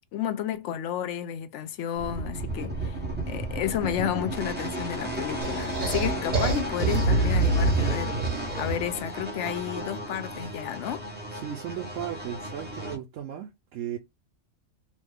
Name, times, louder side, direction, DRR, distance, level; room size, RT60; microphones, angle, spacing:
voice 1, 0.1-3.0 3.3-8.1 8.5-11.1, left 10 dB, 70° left, 0.9 m, -31 dB
sound 1, 2.0-13.0, right 1 dB, 10° right, 0.8 m, -34 dB
sound 2, 5.4-9.0, right 3 dB, 35° right, 1.1 m, -25 dB
voice 2, 11.3-14.0, right 10 dB, 80° right, 0.9 m, -36 dB
3.1 x 2.1 x 3.4 m
omnidirectional pair, 1.3 m